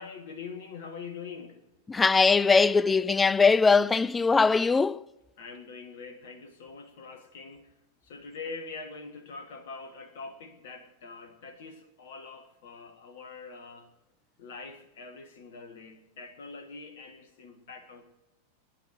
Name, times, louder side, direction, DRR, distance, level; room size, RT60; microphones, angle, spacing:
voice 1, 0.0-1.6 5.4-7.7 8.0-13.9 14.4-18.0, left 4 dB, 55° left, 1.8 m, -44 dB
voice 2, 1.9-5.0, left 4 dB, 15° left, 0.4 m, -21 dB
20.0 x 10.5 x 6.3 m
figure-of-eight pair, 90°, 0 cm